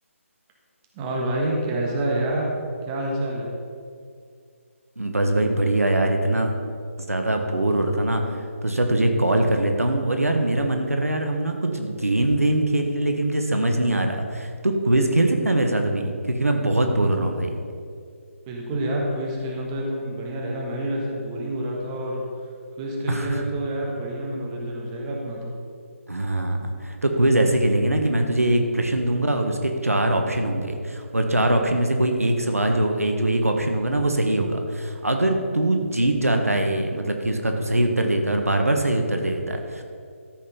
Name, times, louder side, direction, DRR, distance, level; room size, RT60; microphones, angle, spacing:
voice 1, 0.9-3.5 18.5-22.3 22.8-25.5, right 1 dB, 20° right, -2 dB, 1.5 m, -28 dB
voice 2, 5.0-6.5 7.1-8.2 8.6-17.6 23.1-23.4 26.1-39.8, right 1 dB, 85° right, 4 dB, 1.4 m, -22 dB
13.5 x 5.5 x 5.4 m, 2.3 s
figure-of-eight pair, 150°, 8 cm